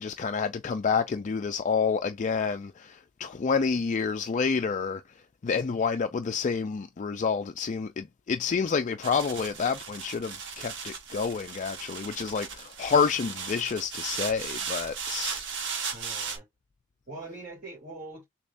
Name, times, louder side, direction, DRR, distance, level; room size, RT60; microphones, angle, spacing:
voice 1, 0.0-5.0 5.4-15.4, left 5 dB, 35° left, 0.4 m, -28 dB
sound 1, 9.0-16.4, right 6 dB, 60° right, 1.2 m, -36 dB
voice 2, 15.9-16.5 17.1-18.2, right 2 dB, 40° right, 2.5 m, -42 dB
6.7 x 3.0 x 2.5 m
head